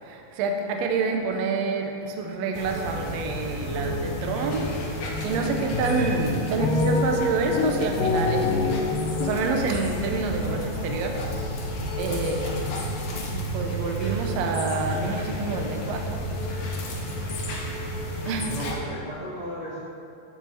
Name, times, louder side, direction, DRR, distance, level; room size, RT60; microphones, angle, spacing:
voice 1, 0.0-11.2 12.0-12.5 13.2-16.2 18.3-18.5, right 4 dB, 90° right, 3 dB, 1.5 m, -28 dB
sound 1, 2.5-18.7, equal, 65° left, 1.7 m, -31 dB
sound 2, 2.9-3.1 3.4-4.7 5.1-9.6, left 3 dB, 80° left, 2.2 m, -28 dB
voice 2, 18.4-19.8, equal, 35° right, -13 dB, 1.0 m, -35 dB
13.5 x 4.8 x 2.8 m, 2.6 s
omnidirectional pair, 3.9 m